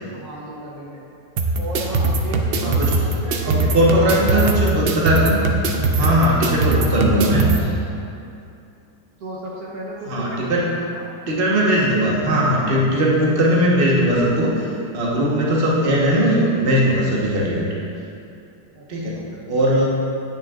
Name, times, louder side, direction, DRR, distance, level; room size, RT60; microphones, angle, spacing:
voice 1, 0.1-1.1 1.5-4.5 5.9-8.0 9.2-11.1 18.7-19.3, right 1 dB, 65° right, -4 dB, 1.5 m, -35 dB
sound 1, 1.4-7.6, right 3 dB, 90° right, 0.5 m, -21 dB
voice 2, 3.4-5.4 5.9-7.5 10.1-10.7 11.3-14.7 14.9-17.6 18.9-19.2 19.5-19.8, equal, 35° right, -5 dB, 1.3 m, -19 dB
9.9 x 8.9 x 2.5 m, 2.6 s
omnidirectional pair, 1.8 m